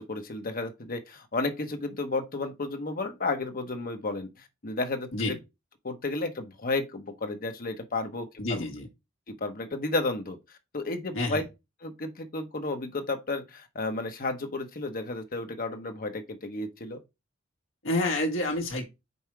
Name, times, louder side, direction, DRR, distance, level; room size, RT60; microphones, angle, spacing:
voice 1, 0.0-5.4 5.8-8.6 9.3-11.4 11.8-17.0, left 3 dB, 45° left, 1.0 m, -32 dB
voice 2, 8.4-8.9 11.1-11.4 17.8-18.9, left 1 dB, 75° left, 1.7 m, -28 dB
5.5 x 4.3 x 4.6 m
head